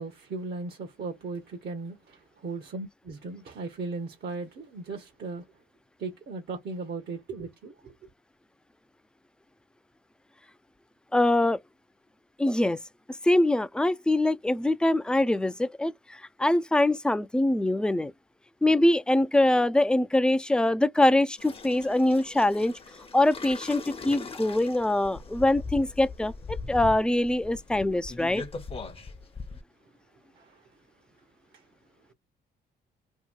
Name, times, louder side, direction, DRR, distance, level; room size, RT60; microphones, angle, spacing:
voice 1, 0.0-5.5 6.0-8.0 30.3-30.7 31.5-31.7, right 3 dB, 55° right, 0.8 m, -37 dB
voice 2, 11.1-11.6 12.4-12.8 13.2-18.1 18.6-22.8 23.1-26.3 26.7-28.4, left 1 dB, 5° left, 0.3 m, -23 dB
sound 1, 21.4-29.6, left 4 dB, 30° left, 0.7 m, -40 dB
2.8 x 2.7 x 2.2 m
supercardioid pair, 60°, 20 cm